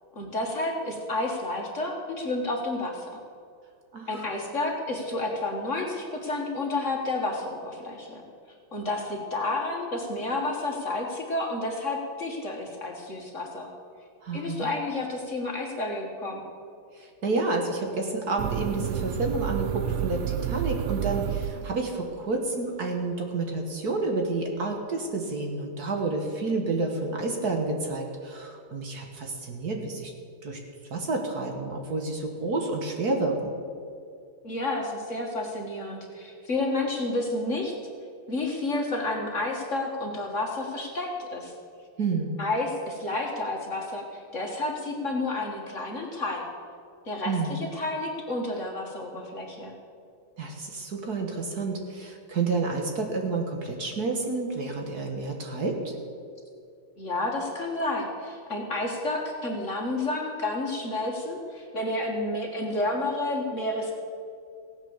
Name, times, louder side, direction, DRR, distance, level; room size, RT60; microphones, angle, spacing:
voice 1, 0.2-3.1 4.1-8.2 8.7-13.7 14.3-16.4 34.4-37.8 38.3-41.5 42.4-46.5 47.1-49.7 57.0-63.9, left 2 dB, 40° left, 0 dB, 1.8 m, -30 dB
voice 2, 3.9-4.2 14.2-14.7 17.0-30.1 30.4-30.6 30.9-33.5 42.0-42.4 47.3-47.5 50.4-55.9, right 3 dB, 50° right, 2 dB, 1.8 m, -29 dB
sound 1, 18.4-22.1, right 11 dB, 85° right, 1.5 m, -30 dB
16.5 x 9.4 x 7.1 m, 2.4 s
omnidirectional pair, 2.3 m